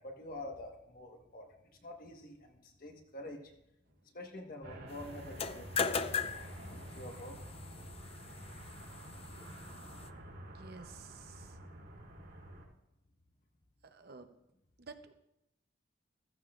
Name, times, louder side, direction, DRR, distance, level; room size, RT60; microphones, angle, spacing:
voice 1, 0.0-1.5 1.8-3.5 4.1-6.1 6.9-7.4, left 1 dB, 50° left, 2 dB, 1.5 m, -47 dB
sound 1, 4.6-12.7, right 1 dB, 85° right, 3.8 m, -49 dB
sound 2, 5.2-10.1, left 6 dB, 30° left, 0.4 m, -39 dB
voice 2, 10.4-11.6 13.8-14.3 14.8-15.1, right 4 dB, 55° right, 7 dB, 0.8 m, -52 dB
15.0 x 14.5 x 2.5 m, 0.83 s
head